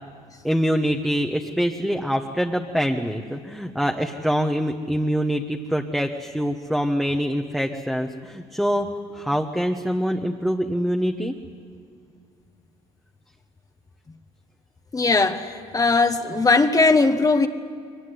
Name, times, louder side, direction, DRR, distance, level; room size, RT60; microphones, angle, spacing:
voice 1, 0.4-8.9 9.1-11.4, equal, ahead, 3 dB, 1.2 m, -24 dB
voice 2, 14.9-17.5, left 3 dB, 25° left, 7 dB, 1.2 m, -19 dB
22.0 x 19.5 x 9.7 m, 2.2 s
supercardioid pair, 80°, 15 cm